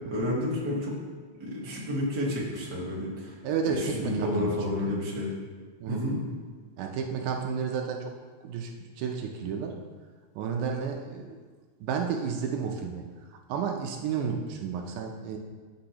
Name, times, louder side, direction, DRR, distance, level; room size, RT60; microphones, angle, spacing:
voice 1, 0.1-0.9 1.4-3.3 3.7-5.3 5.9-6.2, left 1 dB, 35° right, -5 dB, 2.2 m, -30 dB
voice 2, 3.4-4.5 4.9-5.0 5.8-6.0 6.8-8.0 8.4-9.8 10.4-11.4 11.8-13.0 13.5-15.4, right 6 dB, 85° right, 2 dB, 2.2 m, -31 dB
14.0 x 6.2 x 2.9 m, 1.5 s
omnidirectional pair, 3.5 m